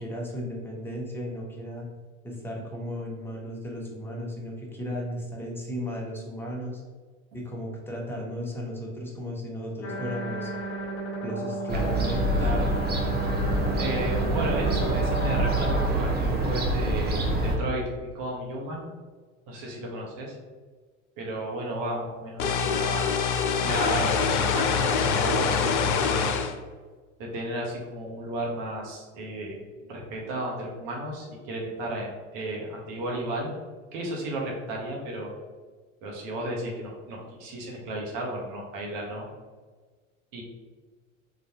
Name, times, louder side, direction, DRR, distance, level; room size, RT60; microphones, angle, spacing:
voice 1, 0.0-1.9 2.2-6.8 7.3-10.5 11.2-12.5, equal, 5° left, -2 dB, 1.0 m, -35 dB
sound 1, 9.8-15.9, right 1 dB, 30° left, 1.1 m, -33 dB
Fowl / Gull seagull, 11.7-17.6, right 1 dB, 25° right, 0.7 m, -26 dB
voice 2, 12.3-12.7 13.8-17.2 17.4-17.9 18.1-18.9 19.5-20.4 21.2-23.1 23.5-26.3 27.2-29.6 29.9-33.5 33.9-35.3 36.0-39.3 40.3-40.4, right 1 dB, 55° right, -1 dB, 1.1 m, -33 dB
sound 2, 22.4-26.5, left 6 dB, 65° left, 0.5 m, -24 dB
3.9 x 2.5 x 2.9 m, 1.4 s
hypercardioid pair, 80°, 40 cm